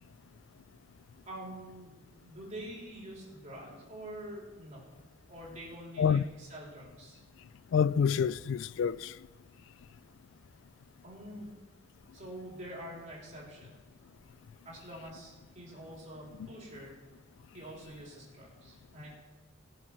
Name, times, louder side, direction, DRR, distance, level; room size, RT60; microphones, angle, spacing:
voice 1, 1.3-4.9 5.3-7.2 11.0-11.5 12.1-13.7 14.6-16.9 17.5-19.2, right 1 dB, 35° right, 3.9 m, -46 dB
voice 2, 7.7-9.1, left 7 dB, 65° left, 0.3 m, -27 dB
19.0 x 7.5 x 4.5 m
head